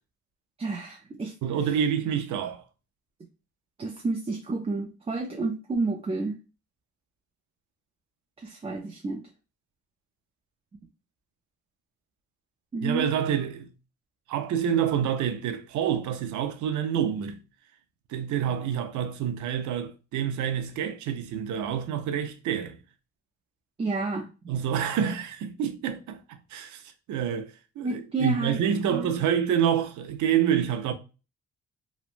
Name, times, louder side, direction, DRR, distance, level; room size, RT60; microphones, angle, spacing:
voice 1, 0.6-1.3 3.8-6.4 8.4-9.2 12.7-13.1 23.8-24.3 27.8-28.6 28.9-29.1, right 3 dB, 20° right, 0.4 m, -30 dB
voice 2, 1.4-2.6 12.8-13.7 14.3-17.4 18.1-22.8 24.5-26.2 26.5-26.8 27.1-27.5 27.8-30.9, right 9 dB, 75° right, 0.5 m, -27 dB
2.9 x 2.1 x 2.5 m
cardioid pair, 90°, 30 cm